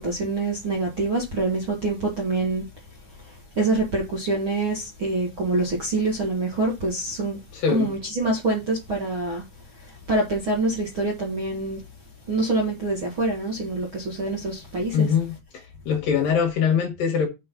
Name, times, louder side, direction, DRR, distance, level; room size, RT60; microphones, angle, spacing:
voice 1, 0.0-2.6 3.2-7.4 7.7-9.4 9.8-11.8 12.3-15.2, right 2 dB, 45° right, 1.6 m, -25 dB
voice 2, 7.5-7.9 14.9-15.4 15.9-17.3, left 7 dB, 65° left, 2.5 m, -22 dB
6.3 x 6.1 x 5.7 m
omnidirectional pair, 5.2 m